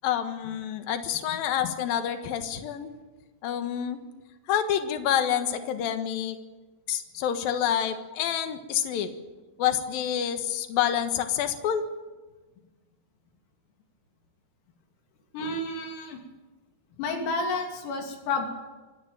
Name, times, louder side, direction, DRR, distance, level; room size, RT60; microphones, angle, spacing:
voice 1, 0.0-2.9 3.4-4.0 4.5-6.4 6.9-9.1 9.6-11.8, left 9 dB, 65° left, 8 dB, 2.4 m, -28 dB
voice 2, 15.3-16.2 17.0-18.5, left 3 dB, 85° left, 2 dB, 5.8 m, -30 dB
25.5 x 14.0 x 9.0 m, 1.2 s
omnidirectional pair, 6.0 m